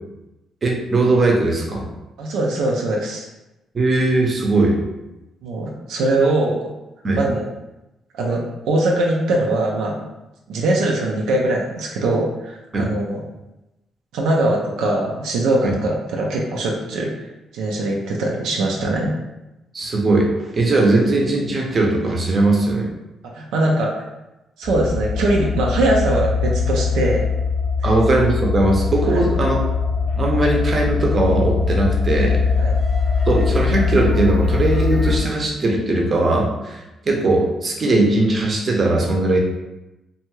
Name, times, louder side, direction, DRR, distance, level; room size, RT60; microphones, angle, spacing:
voice 1, 0.6-1.9 3.7-4.8 7.0-7.2 12.7-12.9 15.6-15.7 18.8-18.9 19.7-20.3 20.5-22.9 27.8-29.6 30.2-32.4 33.3-36.8 37.1-39.4, right 2 dB, 40° right, -1 dB, 0.7 m, -19 dB
voice 2, 2.2-3.3 5.4-6.7 7.1-7.4 8.1-10.0 10.5-13.2 14.1-17.3 17.5-19.1 23.3-24.0 24.6-27.3 27.8-27.9 29.0-29.2 32.6-32.7, right 2 dB, 85° right, -2 dB, 0.4 m, -21 dB
sound 1, 24.6-35.2, left 5 dB, 20° left, 0.5 m, -21 dB
2.6 x 2.3 x 3.0 m, 0.97 s
cardioid pair, 90°, 0 cm